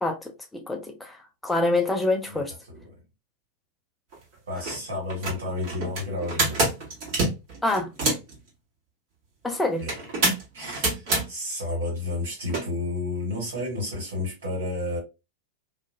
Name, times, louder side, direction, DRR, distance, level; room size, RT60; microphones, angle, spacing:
voice 1, 0.0-2.5 7.6-7.9 9.4-9.8, left 2 dB, 5° left, 0.4 m, -26 dB
sound 1, 4.1-4.2 4.6-4.8 5.1-8.3 9.9-11.3 12.5-12.6, right 2 dB, 45° right, 1.2 m, -26 dB
voice 2, 4.5-6.7 9.8-10.0 10.5-15.0, left 2 dB, 65° right, 1.6 m, -31 dB
2.5 x 2.2 x 2.5 m
figure-of-eight pair, 90°, 0 cm